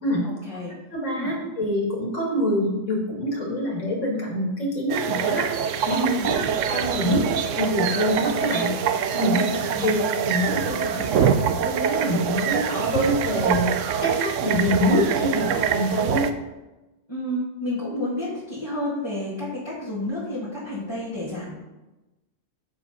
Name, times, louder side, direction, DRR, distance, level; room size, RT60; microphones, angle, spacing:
voice 1, 0.2-0.7 1.2-1.3 6.0-6.4 9.3-9.9 17.1-21.6, left 1 dB, 20° left, -9 dB, 1.8 m, -31 dB
voice 2, 0.9-6.4 6.7-7.2 7.5-8.7 9.1-9.4 9.8-16.2, equal, 75° left, -2 dB, 2.4 m, -25 dB
sound 1, 4.9-16.3, right 7 dB, 80° right, 0.9 m, -24 dB
8.1 x 4.8 x 5.2 m, 1.1 s
omnidirectional pair, 1.3 m